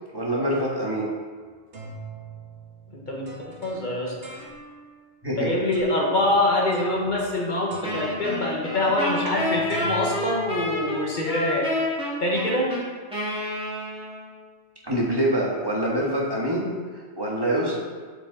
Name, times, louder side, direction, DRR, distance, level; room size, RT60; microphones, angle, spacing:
voice 1, 0.1-1.1 5.2-5.5 14.8-16.7 17.2-17.8, right 1 dB, 20° right, -4 dB, 1.6 m, -25 dB
sound 1, 1.4-5.0 5.7-6.2 6.7-7.4 7.7-11.2, right 4 dB, 90° right, 1.8 m, -43 dB
voice 2, 2.9-4.3 5.4-12.8, left 1 dB, 45° left, -3 dB, 1.6 m, -25 dB
Wind instrument woodwind instrument, 7.8-14.4, left 1 dB, 5° right, 2.2 m, -29 dB
7.9 x 6.4 x 4.1 m, 1.5 s
omnidirectional pair, 1.1 m